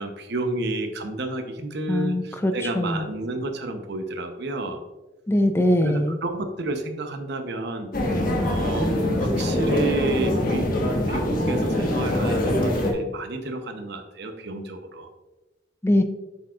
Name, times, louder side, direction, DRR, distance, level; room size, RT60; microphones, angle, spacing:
voice 1, 0.0-4.8 5.8-7.9 8.4-10.8 11.1-15.1, right 2 dB, 60° right, 6 dB, 0.8 m, -31 dB
voice 2, 1.9-3.1 5.3-6.2 15.8-16.0, left 1 dB, 15° left, 6 dB, 0.4 m, -22 dB
sound 1, 7.9-12.9, left 1 dB, 50° left, 1.3 m, -23 dB
7.5 x 7.2 x 2.4 m, 1.1 s
head